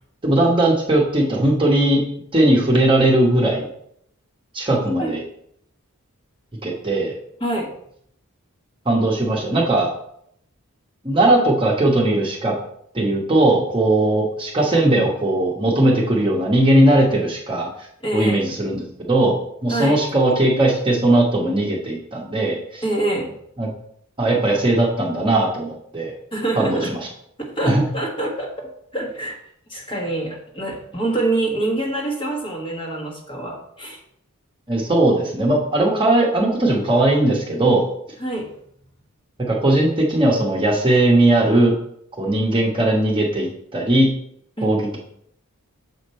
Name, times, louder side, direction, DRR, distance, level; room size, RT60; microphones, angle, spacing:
voice 1, 0.2-2.0 2.3-3.7 4.5-5.2 6.6-7.2 8.8-9.9 11.0-12.5 12.9-17.7 18.1-22.8 23.6-23.7 24.2-26.1 26.6-27.1 27.6-27.8 34.7-37.9 39.5-41.7 42.2-44.1 44.6-45.0, right 1 dB, 20° right, -2 dB, 1.1 m, -18 dB
voice 2, 18.0-18.4 19.7-20.0 22.8-23.3 26.3-26.9 27.4-28.7 28.9-29.4 29.7-34.0 38.2-38.5 44.6-44.9, right 2 dB, 25° left, 0 dB, 1.4 m, -25 dB
7.0 x 5.1 x 4.2 m, 0.70 s
head